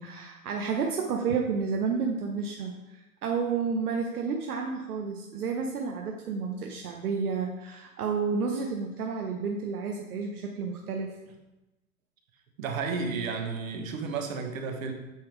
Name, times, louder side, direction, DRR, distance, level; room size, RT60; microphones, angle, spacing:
voice 1, 0.0-11.1, right 5 dB, 85° right, 2 dB, 0.9 m, -31 dB
voice 2, 12.6-14.9, right 4 dB, 65° right, 4 dB, 1.4 m, -32 dB
8.6 x 3.7 x 4.6 m, 1.0 s
hypercardioid pair, 120°, 44 cm